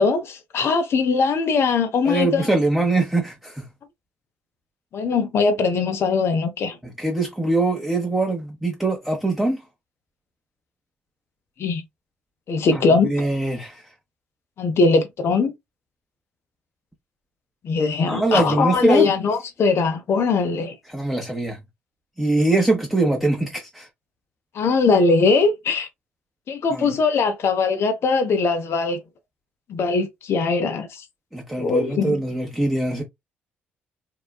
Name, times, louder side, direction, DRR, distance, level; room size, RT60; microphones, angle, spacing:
voice 1, 0.0-2.5 4.9-6.8 11.6-11.8 12.5-13.1 14.6-15.5 17.6-20.7 24.5-25.9 26.5-29.0 29.7-31.0 31.6-32.2, left 4 dB, 50° left, 0.6 m, -21 dB
voice 2, 2.0-3.7 7.0-9.6 12.7-13.8 18.1-19.1 20.9-21.6 22.2-23.9 26.7-26.9 31.3-33.0, right 2 dB, 5° right, 0.8 m, -22 dB
3.8 x 2.2 x 2.2 m
figure-of-eight pair, 45°, 5 cm